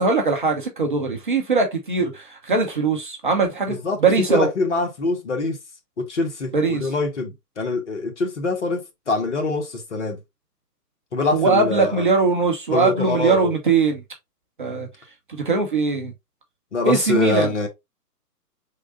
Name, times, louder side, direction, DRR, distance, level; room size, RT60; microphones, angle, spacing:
voice 1, 0.0-4.5 6.5-6.9 11.3-14.0 14.6-14.9 15.4-16.1 16.9-17.5, right 4 dB, 30° right, 0.7 m, -21 dB
voice 2, 3.7-4.0 4.3-5.6 6.0-10.2 11.1-12.1 12.7-13.5 16.7-17.7, left 3 dB, 45° left, 1.3 m, -24 dB
4.6 x 3.7 x 2.5 m
figure-of-eight pair, 140°, 48 cm